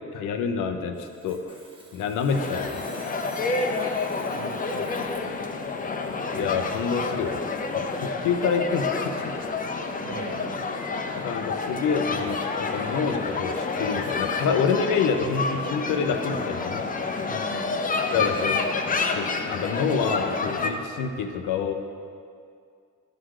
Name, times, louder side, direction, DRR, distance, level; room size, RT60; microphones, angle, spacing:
voice 1, 0.1-1.6 1.9-2.8 6.3-7.4 7.9-9.3 11.2-16.8 18.1-18.8 19.1-21.7, left 5 dB, 85° left, 6 dB, 0.7 m, -27 dB
Sawing, 0.9-8.1, right 1 dB, 15° right, 1.1 m, -52 dB
sound 1, 2.3-20.7, left 4 dB, 30° left, 0.6 m, -29 dB
voice 2, 4.1-5.1 10.0-10.6 17.3-17.8 18.1-18.3 18.8-18.9, right 5 dB, 65° right, 4 dB, 0.9 m, -41 dB
11.0 x 4.0 x 4.8 m, 2.3 s
cardioid pair, 90°, 30 cm